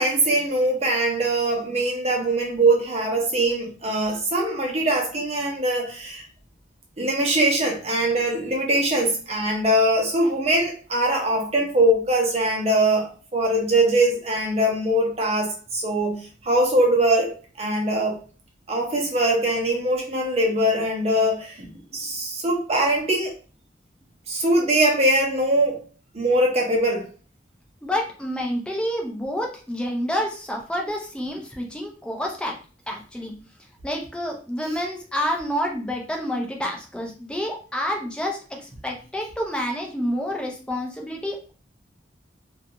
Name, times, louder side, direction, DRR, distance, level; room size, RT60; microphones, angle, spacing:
voice 1, 0.0-6.2 7.0-18.2 18.7-21.7 21.9-23.3 24.3-25.8 26.1-27.1, right 1 dB, 35° right, 0.7 m, -22 dB
voice 2, 27.8-32.5 32.9-33.3 33.8-41.5, equal, 5° left, 0.5 m, -28 dB
2.5 x 2.3 x 2.7 m
head